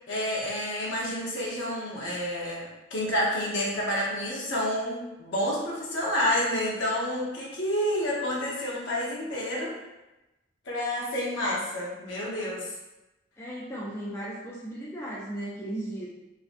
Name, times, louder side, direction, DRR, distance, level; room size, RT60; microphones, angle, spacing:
voice 1, 0.1-9.7 10.7-12.7, equal, 70° left, -4 dB, 0.6 m, -29 dB
voice 2, 13.4-16.1, right 1 dB, 10° left, -6 dB, 0.3 m, -36 dB
2.4 x 2.1 x 2.4 m, 1.0 s
head